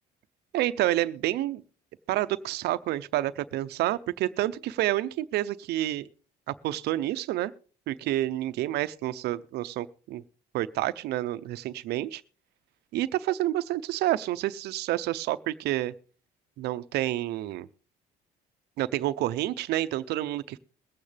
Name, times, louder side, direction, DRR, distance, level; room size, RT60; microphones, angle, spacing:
voice 1, 0.5-1.6 2.1-6.1 6.5-7.5 7.9-10.2 10.5-12.2 12.9-15.9 16.6-17.7 18.8-20.6, right 15 dB, 75° right, 13 dB, 0.6 m, -29 dB
22.0 x 8.7 x 3.3 m, 0.40 s
cardioid pair, 110°, 17 cm